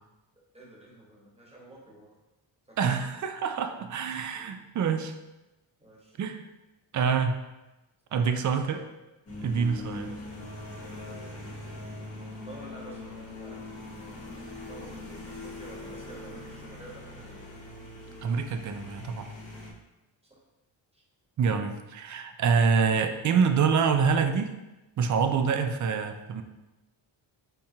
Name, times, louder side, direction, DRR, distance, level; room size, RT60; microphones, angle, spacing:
voice 1, 0.5-2.2 2.7-2.8 4.3-4.5 5.8-6.2 8.1-8.9 9.7-10.5 10.8-11.6 12.4-17.6 20.3-20.4 20.9-21.0, right 2 dB, 15° right, -4 dB, 1.3 m, -49 dB
voice 2, 2.8-5.1 6.2-6.5 6.9-7.4 8.1-8.8 9.4-10.1 18.2-19.3 21.4-24.5 25.0-26.4, right 6 dB, 40° right, 7 dB, 0.4 m, -26 dB
sound 1, 9.3-19.7, left 2 dB, 30° left, 0.9 m, -42 dB
4.2 x 3.6 x 2.7 m, 1.0 s
cardioid pair, 100°, 47 cm